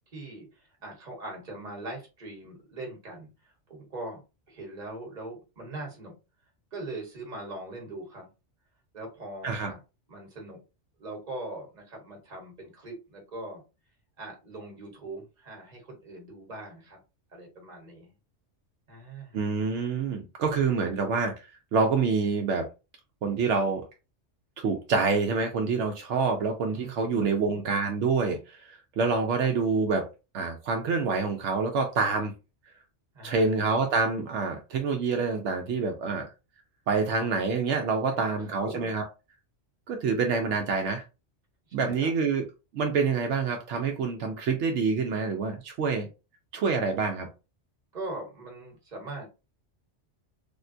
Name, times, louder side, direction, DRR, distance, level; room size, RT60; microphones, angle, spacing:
voice 1, 0.1-4.2 4.5-6.1 6.7-8.3 8.9-9.8 10.1-10.6 11.0-13.6 14.2-17.0 17.3-18.1 18.9-19.5 26.7-27.6 33.1-33.6 38.1-39.0 41.8-42.1 47.9-49.3, right 2 dB, 40° right, 1 dB, 1.2 m, -41 dB
voice 2, 19.3-21.3 21.7-22.7 23.2-23.8 24.6-30.1 30.3-32.3 33.2-36.3 36.9-39.0 39.9-41.0 41.7-42.4 42.7-46.1 46.5-47.3, right 4 dB, 75° right, 3 dB, 0.9 m, -27 dB
3.5 x 2.2 x 2.5 m, 0.29 s
omnidirectional pair, 1.2 m